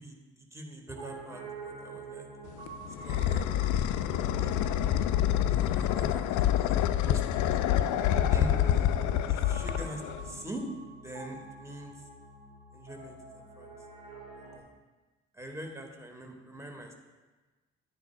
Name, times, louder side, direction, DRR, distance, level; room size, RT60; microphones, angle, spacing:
voice 1, 0.0-2.3 3.0-4.9 5.5-8.0 8.3-8.9 9.3-10.6 11.0-12.0 12.7-13.7 14.4-14.8 15.3-16.9, right 1 dB, 10° right, 2 dB, 1.7 m, -43 dB
Piano, 0.9-14.6, right 4 dB, 70° right, 2.4 m, -47 dB
sound 1, 2.5-10.4, left 11 dB, 55° left, 0.5 m, -27 dB
12.5 x 9.3 x 2.2 m, 1.2 s
figure-of-eight pair, 45°, 36 cm